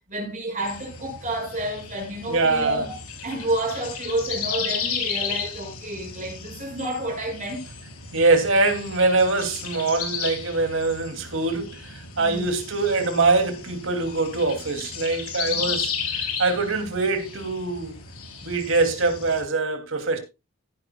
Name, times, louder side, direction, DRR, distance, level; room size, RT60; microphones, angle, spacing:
voice 1, 0.1-3.0 3.2-7.6 12.2-12.5 15.5-15.7, right 1 dB, 35° right, 6.4 m, -30 dB
birds loop, 0.6-19.4, left 6 dB, 90° left, 4.0 m, -34 dB
voice 2, 2.3-2.8 8.1-17.9 18.4-20.2, right 3 dB, 70° right, 2.8 m, -23 dB
16.0 x 10.5 x 2.3 m
head